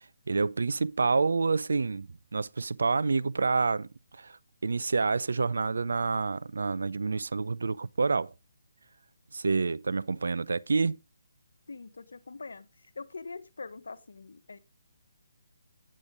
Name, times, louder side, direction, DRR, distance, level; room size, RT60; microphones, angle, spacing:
voice 1, 0.3-4.4 4.6-8.3 9.3-11.0, right 4 dB, 75° right, 0.5 m, -28 dB
voice 2, 11.7-12.7 12.9-14.6, left 4 dB, 75° left, 1.1 m, -43 dB
8.7 x 8.4 x 3.7 m
hypercardioid pair, 155°, 0 cm